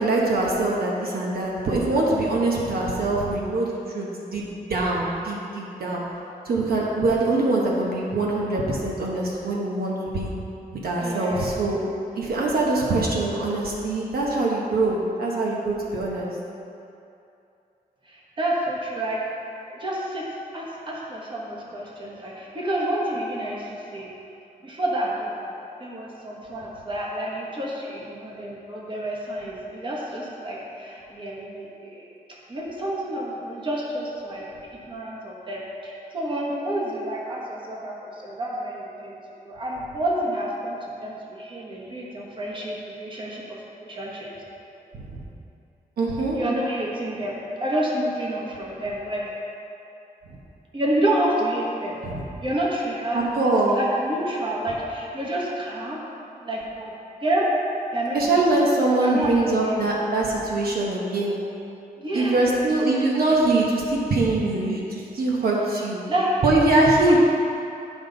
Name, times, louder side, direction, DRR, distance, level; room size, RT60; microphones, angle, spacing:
voice 1, 0.0-6.0 6.4-10.3 10.7-11.8 12.1-16.3 44.9-45.2 46.0-46.4 50.3-50.4 52.0-52.2 53.1-53.8 58.1-61.4 62.1-66.0 66.4-67.2, right 2 dB, 75° right, -3 dB, 1.1 m, -23 dB
voice 2, 11.0-11.5 18.1-19.2 19.7-20.2 20.5-24.1 24.6-25.5 25.8-32.1 32.5-39.2 39.4-43.6 43.9-44.3 46.4-49.2 50.7-52.0 52.4-53.2 53.7-56.0 56.4-56.9 57.2-57.5 57.9-58.6 59.0-59.8 62.0-62.4 66.1-66.3, right 1 dB, 30° right, -4 dB, 1.2 m, -29 dB
10.5 x 5.4 x 3.9 m, 2.7 s
wide cardioid pair, 155°, 16 cm